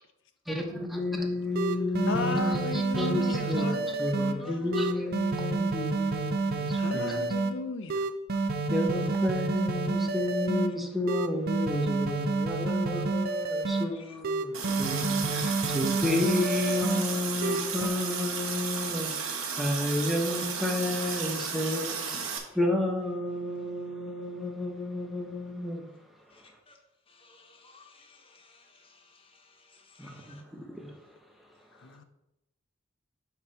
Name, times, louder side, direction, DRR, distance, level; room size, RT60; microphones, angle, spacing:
voice 1, 0.5-7.3 8.7-22.2 22.5-25.9 30.0-30.9, left 1 dB, ahead, 1 dB, 0.9 m, -31 dB
sound 1, 1.1-1.2 1.6-4.3 4.7-7.5 7.9-10.7 11.1-13.9 14.2-17.0 17.4-17.9, right 3 dB, 50° right, 0.5 m, -29 dB
voice 2, 2.1-4.8 6.8-8.1 31.8-32.0, left 2 dB, 65° left, 10 dB, 0.6 m, -35 dB
Water tap faucet, 14.5-22.4, right 6 dB, 85° right, 1.1 m, -34 dB
voice 3, 26.3-26.8 27.1-30.4, left 4 dB, 25° left, 3 dB, 1.0 m, -56 dB
8.2 x 2.9 x 5.6 m, 0.88 s
head